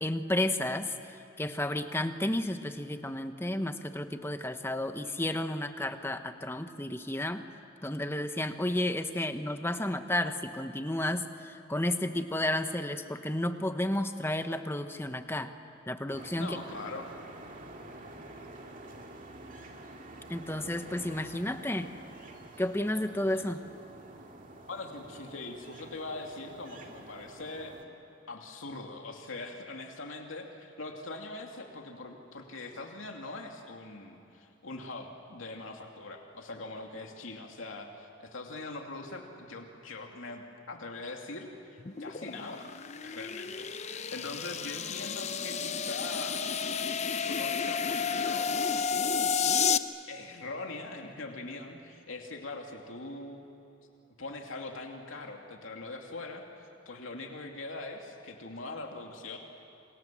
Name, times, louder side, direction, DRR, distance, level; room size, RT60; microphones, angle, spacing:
voice 1, 0.0-7.4 7.8-15.5 15.9-16.6 20.3-21.9 22.6-23.6, left 1 dB, 10° left, 8 dB, 1.1 m, -32 dB
sound 1, 16.1-27.8, right 2 dB, 40° right, 2.4 m, -48 dB
voice 2, 16.4-17.1 24.7-27.8 28.3-42.7 43.0-46.4 47.0-48.8 50.1-53.4 54.2-59.4, left 2 dB, 80° left, 2 dB, 2.7 m, -42 dB
sound 2, 41.8-49.8, left 6 dB, 35° left, 0.7 m, -31 dB
29.0 x 27.0 x 7.6 m, 2.8 s
head